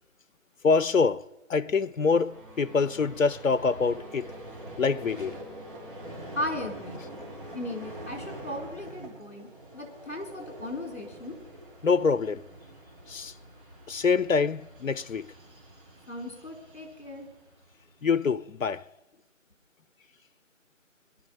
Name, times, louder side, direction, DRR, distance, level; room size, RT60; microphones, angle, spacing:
voice 1, 0.6-1.2 1.5-4.3 4.8-5.4 11.8-12.4 13.1-13.3 13.9-15.3 18.0-18.8, left 5 dB, 85° left, 0.6 m, -25 dB
Vehicle, 1.8-18.1, right 1 dB, 40° right, 3.5 m, -45 dB
sound 1, 2.2-8.7, left 1 dB, 25° right, 3.2 m, -52 dB
voice 2, 6.3-7.0 7.5-11.4 16.1-17.3, left 1 dB, 55° left, 4.3 m, -36 dB
20.5 x 11.5 x 5.7 m
figure-of-eight pair, 165°, 39 cm